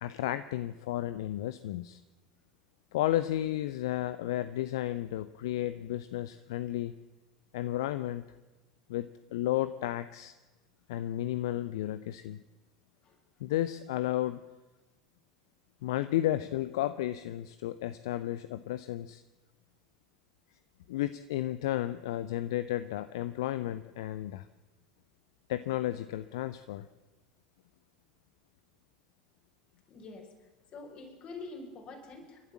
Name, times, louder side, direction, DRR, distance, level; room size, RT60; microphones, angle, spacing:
voice 1, 0.0-2.0 2.9-6.9 7.5-8.2 8.9-10.3 10.9-12.4 13.4-14.4 15.8-19.2 20.9-24.5 25.5-26.9, left 13 dB, 65° left, 13 dB, 0.7 m, -33 dB
voice 2, 29.9-30.3 30.7-32.5, left 3 dB, 40° left, 3 dB, 5.5 m, -46 dB
30.0 x 12.0 x 7.3 m, 1.1 s
figure-of-eight pair, 70°, 3 cm